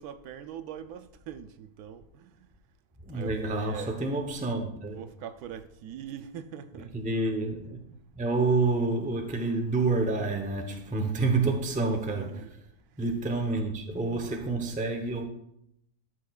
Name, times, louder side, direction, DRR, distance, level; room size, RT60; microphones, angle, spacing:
voice 1, 0.0-2.5 3.1-4.0 4.9-6.9 12.1-12.5, right 9 dB, 80° right, 1.1 m, -42 dB
voice 2, 3.0-5.0 6.9-7.8 8.1-12.6 13.0-15.2, right 3 dB, 10° right, 0.6 m, -28 dB
13.0 x 6.0 x 2.4 m
omnidirectional pair, 1.6 m